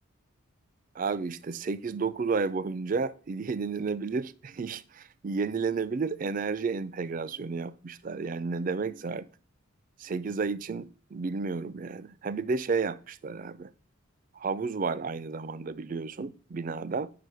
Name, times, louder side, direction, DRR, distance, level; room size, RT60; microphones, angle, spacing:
voice 1, 1.0-9.3 10.0-13.7 14.4-17.1, right 4 dB, 40° right, 0.4 m, -32 dB
9.2 x 6.0 x 4.8 m
head